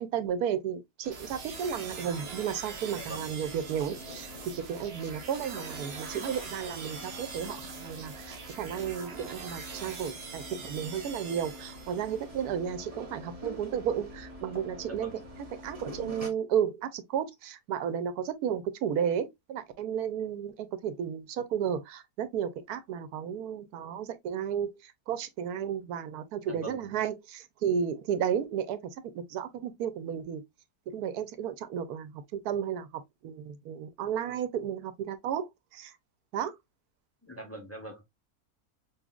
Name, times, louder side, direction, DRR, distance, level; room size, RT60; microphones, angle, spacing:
voice 1, 0.0-4.3 4.6-15.1 15.6-28.8 29.1-30.4 30.9-35.9 36.3-36.6, right 8 dB, 85° right, 1.1 m, -33 dB
sound 1, 1.0-16.3, left 1 dB, 25° right, 1.1 m, -46 dB
sound 2, 1.1-12.3, right 5 dB, 50° right, 0.9 m, -44 dB
voice 2, 2.9-3.4 14.9-15.3 26.5-26.9 37.2-38.0, right 1 dB, 25° left, 0.3 m, -43 dB
5.6 x 2.5 x 2.2 m
omnidirectional pair, 1.6 m